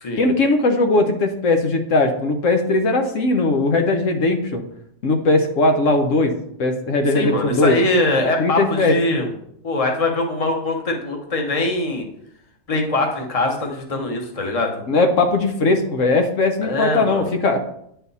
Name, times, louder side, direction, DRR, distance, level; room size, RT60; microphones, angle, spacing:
voice 1, 0.2-4.6 5.0-6.3 6.6-7.8 8.4-8.9 14.9-17.6, left 2 dB, 80° left, 5 dB, 1.2 m, -19 dB
voice 2, 7.1-9.3 9.6-12.0 12.7-14.8 16.6-17.3, left 2 dB, 30° left, 2 dB, 1.0 m, -22 dB
9.5 x 4.0 x 4.1 m, 0.73 s
omnidirectional pair, 1.3 m